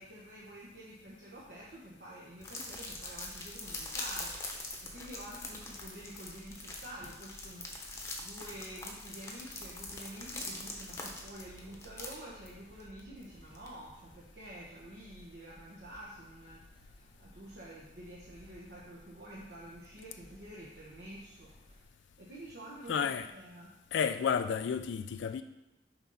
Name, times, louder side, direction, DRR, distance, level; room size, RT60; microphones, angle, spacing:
voice 1, 0.0-4.3 4.8-7.9 8.2-23.1 23.3-23.7, right 1 dB, 65° right, 1.1 m, -49 dB
sound 1, 2.4-14.1, left 2 dB, 15° left, 0.9 m, -43 dB
sound 2, 2.8-21.9, right 1 dB, 30° right, 0.6 m, -58 dB
voice 2, 22.9-23.3 23.9-25.4, left 7 dB, 90° left, 0.3 m, -31 dB
5.9 x 4.1 x 5.6 m
head